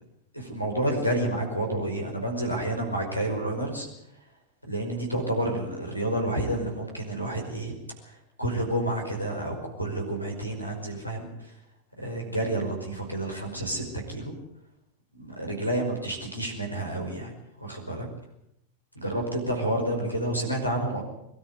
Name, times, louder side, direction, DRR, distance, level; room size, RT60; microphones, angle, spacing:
voice 1, 0.3-3.9 4.6-7.7 8.0-11.3 12.0-14.3 15.1-17.3 17.6-18.1 19.0-21.0, right 1 dB, 90° right, 0 dB, 5.2 m, -29 dB
22.5 x 13.0 x 9.9 m, 0.81 s
figure-of-eight pair, 90°, 0 cm